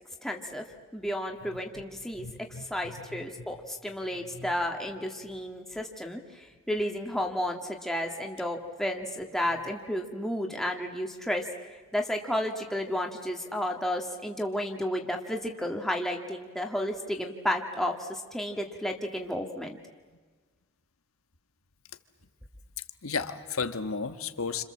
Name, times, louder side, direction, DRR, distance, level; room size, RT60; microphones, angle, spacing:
voice 1, 0.2-0.6 0.9-19.8, equal, ahead, 1 dB, 1.9 m, -32 dB
voice 2, 2.2-2.6 3.1-3.2 4.3-4.5 23.0-24.6, left 5 dB, 85° left, 9 dB, 1.4 m, -33 dB
29.5 x 26.5 x 7.5 m, 1.4 s
head